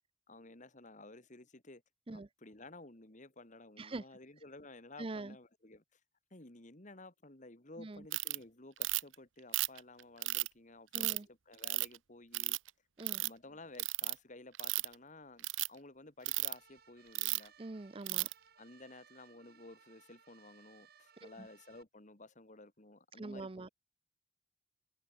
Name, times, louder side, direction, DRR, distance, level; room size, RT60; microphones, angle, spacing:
voice 1, 0.3-1.8 2.1-6.0 6.3-12.6 13.2-17.5 18.6-23.7, left 2 dB, 40° left, 2.2 m, -54 dB
voice 2, 5.0-5.4 7.8-8.0 10.9-11.3 13.0-13.2 17.6-18.3 21.2-21.5 23.2-23.7, right 2 dB, 30° right, 0.6 m, -44 dB
Ratchet pawl, 8.1-8.4 8.8-9.1 9.5-10.5 10.9-11.2 11.6-12.0 12.3-12.7 13.0-13.3 13.8-14.1 14.5-14.9 15.4-15.7 16.3-16.5 17.1-17.5 18.1-18.3, right 19 dB, 80° right, 0.8 m, -34 dB
sound 1, 16.2-21.8, right 7 dB, 50° right, 2.6 m, -64 dB
open air
head